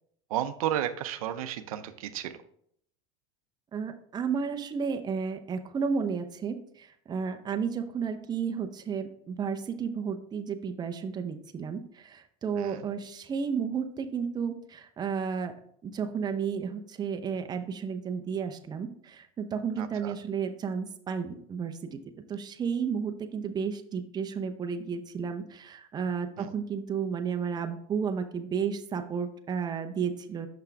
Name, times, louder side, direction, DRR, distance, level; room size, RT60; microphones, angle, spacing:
voice 1, 0.3-2.4 12.6-12.9 19.8-20.2 26.4-26.5, right 11 dB, 90° right, 10 dB, 0.5 m, -33 dB
voice 2, 3.7-15.5 15.8-22.0 22.3-30.5, right 6 dB, 25° right, 7 dB, 0.6 m, -32 dB
5.9 x 5.6 x 3.4 m, 0.67 s
supercardioid pair, 115°, 18 cm